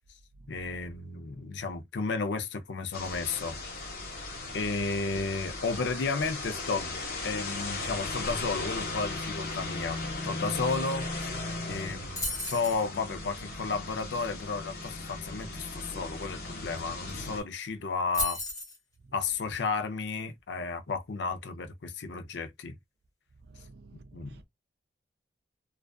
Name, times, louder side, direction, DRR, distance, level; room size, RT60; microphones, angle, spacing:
voice 1, 0.5-3.6 4.5-11.1 11.7-18.4 19.1-22.8 24.1-24.4, left 4 dB, 75° left, 0.5 m, -33 dB
sound 1, 2.9-17.4, left 2 dB, 50° left, 1.0 m, -37 dB
sound 2, 12.2-12.8 16.8-16.9 17.1-17.4 18.1-18.8, left 2 dB, 20° left, 1.1 m, -33 dB
voice 2, 23.5-24.5, right 3 dB, 60° right, 0.4 m, -52 dB
2.4 x 2.3 x 2.2 m
head